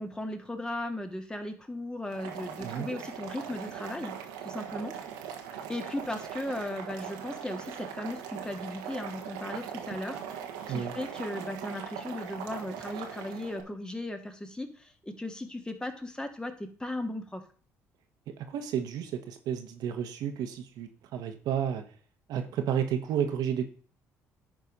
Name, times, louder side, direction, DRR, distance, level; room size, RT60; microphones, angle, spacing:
voice 1, 0.0-4.1 4.4-4.9 5.7-17.4, left 1 dB, 10° left, 6 dB, 1.9 m, -37 dB
Boiling, 2.0-13.6, right 8 dB, 90° right, 1.4 m, -40 dB
voice 2, 18.4-21.8 22.3-23.7, right 9 dB, 70° right, 6 dB, 1.3 m, -31 dB
10.0 x 4.6 x 5.4 m, 0.42 s
supercardioid pair, 70°, 7 cm